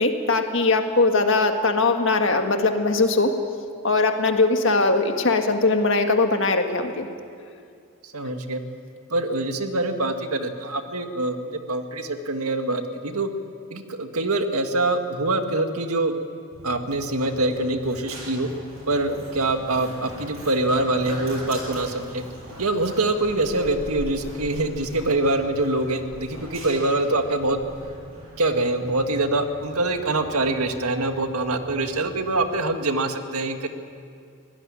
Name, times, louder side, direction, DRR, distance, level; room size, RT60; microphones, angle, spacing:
voice 1, 0.0-3.3 3.8-7.1, left 3 dB, 55° left, 5 dB, 1.8 m, -20 dB
voice 2, 8.0-8.6 9.1-13.3 13.7-16.1 16.6-18.5 18.9-22.2 22.6-27.6 28.4-33.7, right 2 dB, 85° right, 6 dB, 1.8 m, -24 dB
Run, 16.5-32.6, right 1 dB, 70° right, 7.2 m, -41 dB
23.0 x 17.0 x 9.8 m, 2.3 s
head